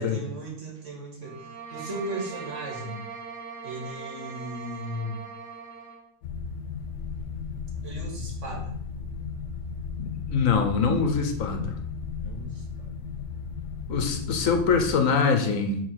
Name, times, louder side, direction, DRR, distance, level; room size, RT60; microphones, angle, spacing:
voice 1, 0.0-3.0 3.6-5.2 7.8-8.7 12.2-12.9, right 1 dB, 70° right, -1 dB, 2.3 m, -36 dB
sound 1, 1.2-6.1, right 5 dB, 85° right, 1.7 m, -40 dB
sound 2, 6.2-15.0, left 5 dB, 70° left, 1.0 m, -35 dB
voice 2, 10.0-11.7 13.9-15.8, left 5 dB, 90° left, 6 dB, 1.4 m, -24 dB
6.5 x 3.9 x 6.4 m, 0.68 s
omnidirectional pair, 1.3 m